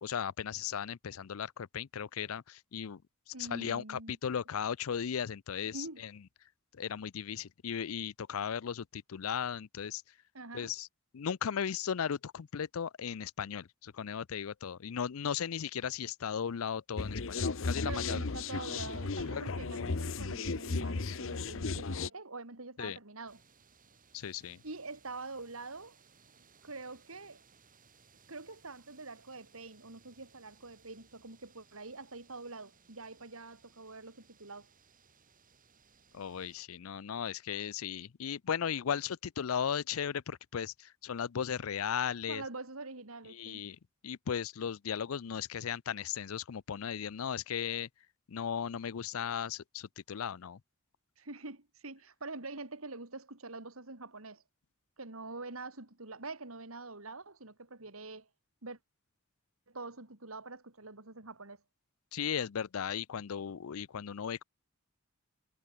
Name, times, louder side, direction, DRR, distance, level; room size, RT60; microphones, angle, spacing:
voice 1, 0.0-3.0 3.3-6.1 6.7-10.0 10.5-10.9 11.1-18.2 19.3-19.5 22.8-23.0 24.1-24.6 36.1-42.4 43.3-47.9 48.3-50.6 62.1-64.4, left 8 dB, 85° left, 0.5 m, -36 dB
voice 2, 3.3-4.1 5.7-6.0 10.3-10.7 17.8-23.4 24.6-26.0 26.6-27.4 28.3-34.7 42.3-43.6 51.2-54.4 55.0-58.3 58.6-58.8 59.7-61.6, right 3 dB, 85° right, 3.4 m, -45 dB
sound 1, 17.0-22.1, left 4 dB, 70° left, 0.9 m, -35 dB
sound 2, 23.3-36.7, right 5 dB, 40° right, 7.9 m, -64 dB
head